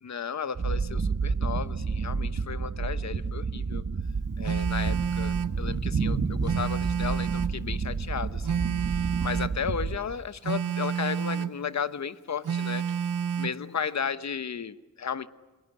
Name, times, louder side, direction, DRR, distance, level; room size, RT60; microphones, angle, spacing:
voice 1, 0.0-3.8 4.4-8.6 9.2-12.8 13.4-15.3, left 7 dB, 60° left, 13 dB, 1.0 m, -34 dB
sound 1, 0.5-10.0, right 4 dB, 50° right, 1.5 m, -30 dB
Telephone, 4.4-5.6 6.4-7.6 8.4-9.6 10.4-11.6 12.4-13.6, right 8 dB, 80° right, 1.1 m, -29 dB
28.5 x 22.0 x 9.5 m, 1.3 s
wide cardioid pair, 140°, 31 cm